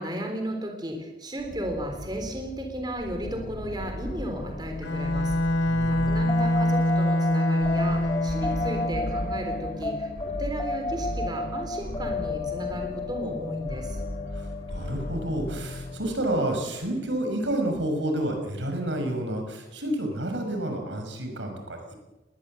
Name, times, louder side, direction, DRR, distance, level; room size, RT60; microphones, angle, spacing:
voice 1, 0.0-5.3 5.8-14.0, equal, 25° right, 3 dB, 3.7 m, -34 dB
sound 1, 1.4-17.1, left 1 dB, 45° left, 1.3 m, -37 dB
Bowed string instrument, 4.8-9.1, left 1 dB, 70° left, 1.8 m, -25 dB
voice 2, 5.7-6.3 14.3-22.0, right 1 dB, 80° right, 4 dB, 6.1 m, -30 dB
sound 2, 6.3-17.1, left 2 dB, 20° left, 3.5 m, -33 dB
21.5 x 20.0 x 8.0 m, 1.1 s
head